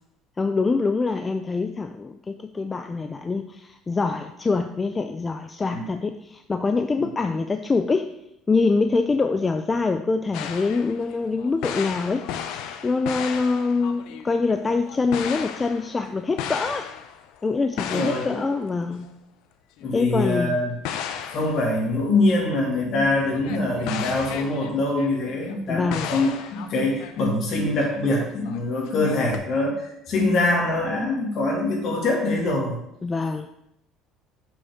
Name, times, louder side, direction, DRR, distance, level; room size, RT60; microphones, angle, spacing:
voice 1, 0.4-8.1 8.5-12.3 12.8-16.9 17.4-19.1 19.9-20.6 25.7-26.1 33.0-33.5, left 4 dB, 20° left, 8 dB, 0.3 m, -24 dB
sound 1, 10.3-17.4 17.8-18.7 19.0-19.1 19.8-19.9 20.8-22.3 23.3-25.7 25.9-28.6 28.8-29.4, left 9 dB, 75° left, 0.5 m, -35 dB
voice 2, 17.9-18.2 19.8-20.7 21.3-32.8, left 2 dB, 50° left, -1 dB, 2.2 m, -24 dB
7.1 x 5.5 x 3.5 m, 0.81 s
cardioid pair, 115°, 0 cm